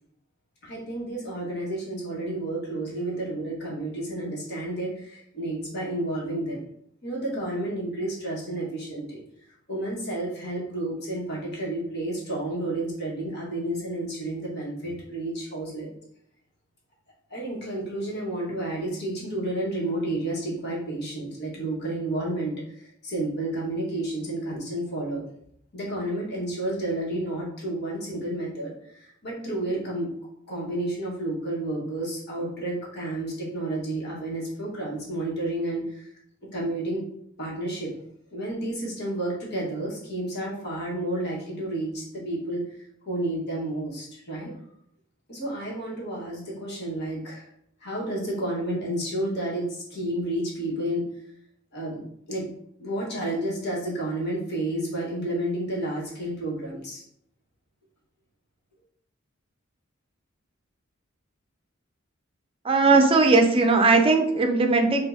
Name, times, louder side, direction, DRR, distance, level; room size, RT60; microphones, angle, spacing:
voice 1, 0.6-6.6 7.0-9.2 9.7-15.9 17.3-25.2 25.7-30.1 30.5-36.1 36.5-37.0 37.4-38.0 38.3-44.5 45.3-47.5 47.8-51.0 51.7-52.4 52.8-57.0, right 1 dB, 55° left, -5 dB, 1.5 m, -31 dB
voice 2, 62.6-65.1, right 3 dB, 25° right, 4 dB, 0.5 m, -19 dB
5.2 x 2.5 x 2.7 m, 0.72 s
head